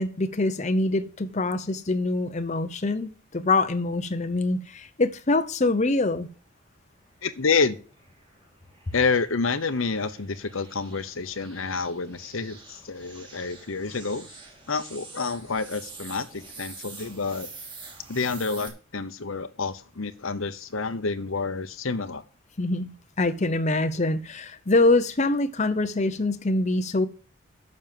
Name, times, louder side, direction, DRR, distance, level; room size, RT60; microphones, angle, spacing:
voice 1, 0.0-6.3 22.6-22.9 23.2-27.1, left 2 dB, 35° left, 0.8 m, -24 dB
sound 1, 7.1-18.7, right 4 dB, 25° right, 2.8 m, -46 dB
voice 2, 7.2-7.8 8.9-14.3 14.7-17.5 18.1-22.2, left 4 dB, 75° left, 1.0 m, -28 dB
9.5 x 6.4 x 7.4 m
head